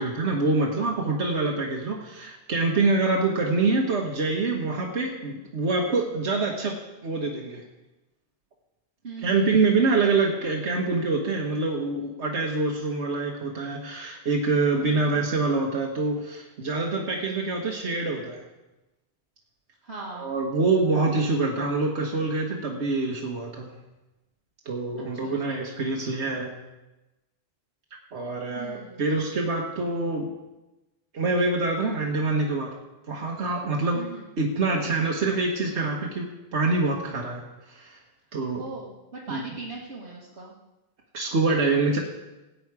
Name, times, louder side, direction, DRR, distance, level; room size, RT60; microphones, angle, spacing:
voice 1, 0.0-7.6 9.2-18.4 20.2-23.7 24.6-26.5 28.1-30.3 31.1-32.7 33.1-34.0 34.4-36.3 36.5-38.0 38.3-38.6 39.3-39.4 41.1-42.0, right 3 dB, 85° right, 0 dB, 1.6 m, -25 dB
voice 2, 9.0-9.5 14.8-15.2 19.8-20.4 25.1-25.6 28.6-29.0 33.9-34.2 38.6-40.5, right 3 dB, 65° right, -4 dB, 1.8 m, -39 dB
17.0 x 9.2 x 4.8 m, 1.0 s
omnidirectional pair, 1.1 m